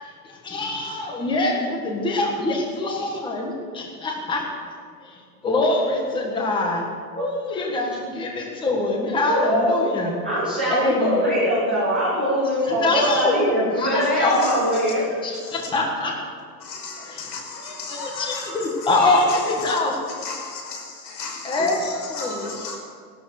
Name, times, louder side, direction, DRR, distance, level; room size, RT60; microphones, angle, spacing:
voice 1, 0.2-4.5 5.0-5.2 5.4-6.8 7.2-10.1 10.7-11.5 12.7-13.4 13.8-14.5 15.2-16.1 17.0-17.2 17.6-19.9 21.4-22.5, left 2 dB, 10° left, 1.6 m, -24 dB
voice 2, 9.3-9.9 10.2-15.4, equal, 10° right, 0.3 m, -22 dB
voice 3, 14.4-14.8 15.5-15.7 16.6-19.8 20.1-20.6 21.1-22.8, left 4 dB, 85° left, 5.3 m, -34 dB
17.0 x 12.5 x 6.6 m
supercardioid pair, 170°, 49 cm